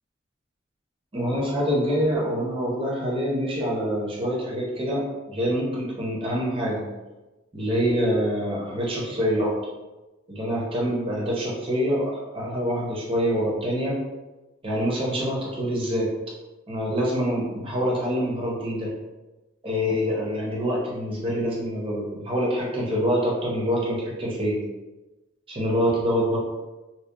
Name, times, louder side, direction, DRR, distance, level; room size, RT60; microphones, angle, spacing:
voice 1, 1.1-6.8 7.5-9.5 10.3-14.0 14.6-16.1 16.7-18.9 19.6-24.6 25.5-26.4, equal, 30° right, -4 dB, 0.6 m, -25 dB
2.7 x 2.1 x 2.2 m, 1.1 s
head